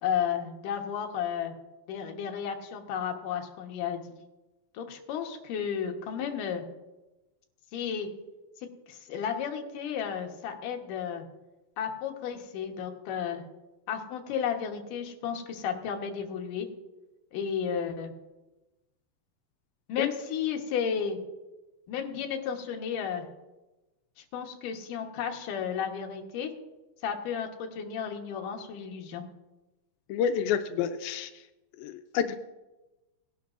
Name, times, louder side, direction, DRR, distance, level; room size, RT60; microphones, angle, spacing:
voice 1, 0.0-1.5 1.9-4.1 4.7-6.6 7.7-8.1 8.9-11.2 11.8-13.4 13.9-16.7 17.3-18.1 19.9-21.2 21.9-23.3 24.3-26.5 27.0-29.2, left 7 dB, 70° left, 3 dB, 2.7 m, -33 dB
voice 2, 30.1-31.3 31.8-32.4, left 8 dB, 90° left, 8 dB, 2.4 m, -29 dB
19.0 x 11.0 x 2.5 m, 1.1 s
omnidirectional pair, 4.1 m